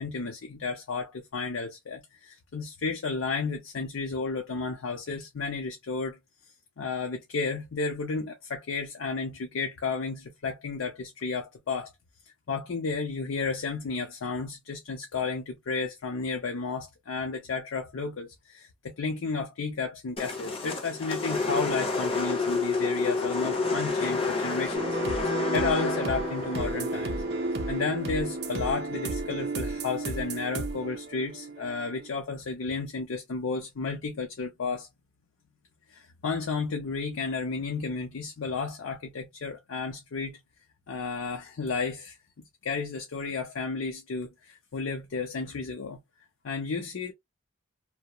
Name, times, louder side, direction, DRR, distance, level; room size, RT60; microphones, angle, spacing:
voice 1, 0.0-6.2 6.8-11.9 12.5-24.9 25.2-27.2 27.7-34.9 35.9-40.4 40.9-42.2 42.6-46.0 46.4-47.1, left 4 dB, 85° left, 0.5 m, -32 dB
sound 1, 20.2-28.4, left 3 dB, 30° left, 0.6 m, -30 dB
sound 2, 24.7-32.1, right 3 dB, 50° right, 0.5 m, -33 dB
2.8 x 2.1 x 2.3 m
head